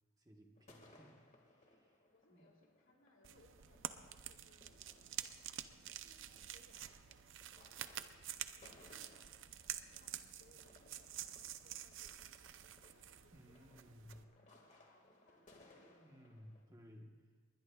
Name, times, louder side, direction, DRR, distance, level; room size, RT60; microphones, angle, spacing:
voice 1, 0.2-1.2 1.5-2.0 2.3-2.5 13.3-14.2 15.8-17.1, equal, 15° right, 1 dB, 1.2 m, -59 dB
sound 1, 0.6-16.6, left 2 dB, 35° left, 1.9 m, -67 dB
voice 2, 2.1-6.9 7.5-7.9 8.4-16.0, left 1 dB, 60° left, 0 dB, 2.9 m, -71 dB
sound 2, 3.2-14.2, right 11 dB, 60° right, 0.6 m, -49 dB
21.0 x 20.0 x 2.4 m, 1.5 s
head